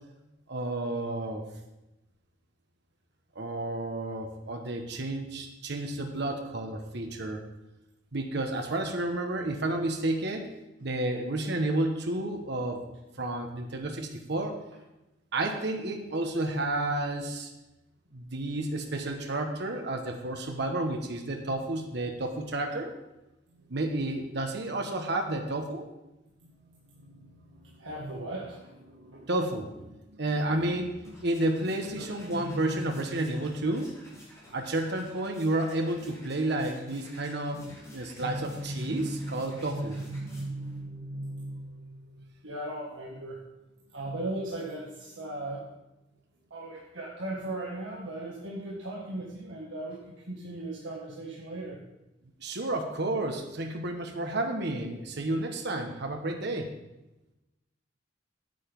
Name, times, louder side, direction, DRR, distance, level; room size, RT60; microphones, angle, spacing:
voice 1, 0.5-1.4 3.3-7.4 8.1-10.5 10.8-12.8 13.2-14.6 15.3-17.5 18.1-22.9 23.7-25.9 29.3-29.7 30.2-30.9 31.2-33.9 34.5-37.6 37.9-40.0 52.4-56.7, right 2 dB, 65° right, 4 dB, 1.2 m, -31 dB
voice 2, 26.4-29.3 30.1-31.1 31.9-33.6 34.5-34.6 37.5-37.8 38.2-43.5 43.8-45.6 46.5-51.8, right 1 dB, 80° right, -3 dB, 1.6 m, -38 dB
sound 1, 30.7-40.8, equal, 15° left, 3.9 m, -53 dB
9.1 x 8.0 x 5.3 m, 0.97 s
head